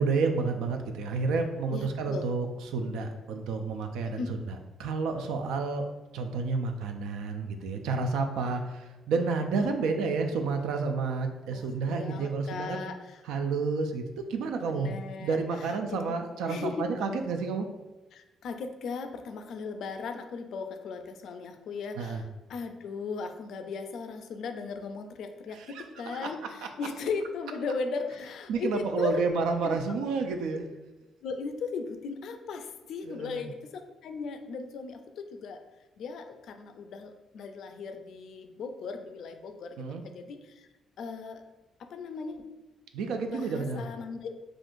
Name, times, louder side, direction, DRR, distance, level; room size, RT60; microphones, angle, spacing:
voice 1, 0.0-5.9 6.1-12.8 13.3-17.7 22.0-22.2 25.5-26.2 28.5-30.6 33.0-33.5 39.8-40.0 42.9-43.8, right 4 dB, 90° right, 5 dB, 0.3 m, -30 dB
voice 2, 1.7-2.3 4.1-4.3 11.5-13.2 14.6-16.2 16.5-16.9 18.1-29.2 29.6-29.8 31.2-35.6 36.0-40.7 41.0-41.4 41.8-42.5 43.3-44.4, left 4 dB, 70° left, 7 dB, 0.3 m, -37 dB
3.6 x 2.4 x 2.5 m, 1.1 s
cardioid pair, 90°, 0 cm